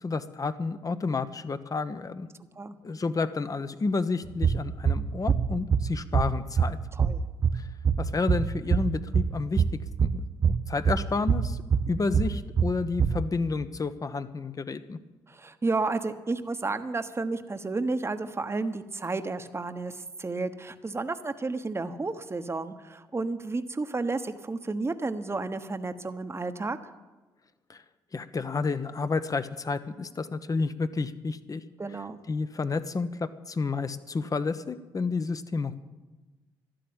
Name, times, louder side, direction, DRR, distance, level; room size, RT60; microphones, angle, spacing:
voice 1, 0.0-2.3 2.8-6.8 7.5-7.7 8.0-9.6 10.0-10.3 10.7-11.6 11.9-15.0 27.7-27.8 28.1-31.6 32.3-35.8, left 4 dB, 35° left, 12 dB, 1.1 m, -30 dB
sound 1, 4.3-13.3, right 6 dB, 45° right, 0.7 m, -26 dB
voice 2, 15.3-26.8 31.8-32.2, right 3 dB, 25° right, 9 dB, 1.2 m, -32 dB
13.0 x 11.5 x 8.9 m, 1.2 s
supercardioid pair, 55°, 10 cm